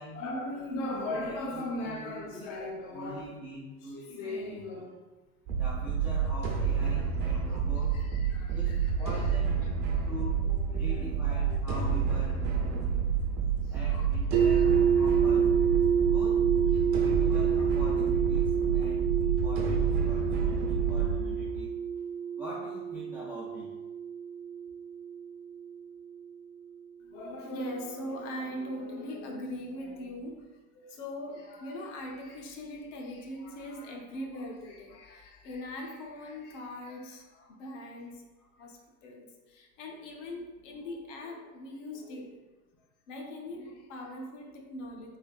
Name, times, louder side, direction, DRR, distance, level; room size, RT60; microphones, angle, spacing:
voice 1, 0.1-3.3 3.8-5.0 7.0-9.1 9.6-10.1 10.4-11.6 12.5-12.8 13.6-15.1 16.0-16.2 16.7-16.9 27.0-42.4 43.1-45.2, left 1 dB, 55° left, 1 dB, 0.8 m, -40 dB
voice 2, 1.5-4.6 5.6-8.0 8.5-9.6 10.1-10.4 10.7-12.4 13.7-15.5 16.0-16.4 16.7-21.7 22.4-23.7, left 1 dB, 5° right, -12 dB, 0.3 m, -44 dB
sound 1, 5.5-21.7, right 6 dB, 40° right, 0.7 m, -29 dB
sound 2, 14.3-26.2, right 7 dB, 80° right, 0.7 m, -28 dB
3.4 x 3.2 x 2.3 m, 1.2 s
hypercardioid pair, 125°, 46 cm